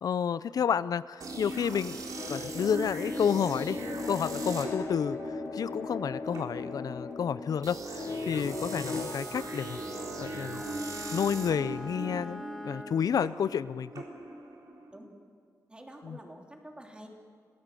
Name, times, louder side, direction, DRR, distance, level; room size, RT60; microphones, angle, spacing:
voice 1, 0.0-2.0 2.3-3.8 4.1-5.2 5.5-9.8 10.2-10.6 11.1-13.9 16.0-16.2, left 7 dB, 85° left, 16 dB, 0.5 m, -30 dB
sound 1, 1.2-14.9, right 2 dB, 75° right, 4.0 m, -39 dB
sound 2, 2.2-9.2, left 4 dB, 50° left, 0.8 m, -38 dB
Bowed string instrument, 8.8-13.1, left 1 dB, ahead, 2.8 m, -43 dB
voice 2, 15.7-17.1, right 1 dB, 15° right, 1 dB, 3.1 m, -48 dB
26.5 x 18.0 x 7.7 m, 2.2 s
wide cardioid pair, 145°, 6 cm